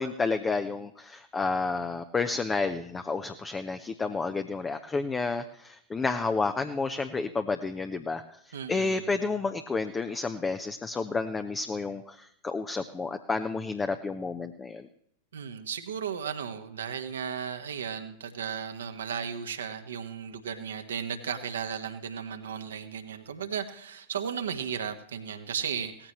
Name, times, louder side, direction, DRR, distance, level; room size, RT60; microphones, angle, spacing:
voice 1, 0.0-14.9, left 4 dB, 15° left, 8 dB, 0.7 m, -30 dB
voice 2, 8.5-9.0 15.3-26.1, right 7 dB, 65° right, 7 dB, 1.4 m, -35 dB
18.0 x 15.0 x 3.1 m, 0.70 s
figure-of-eight pair, 90°, 0 cm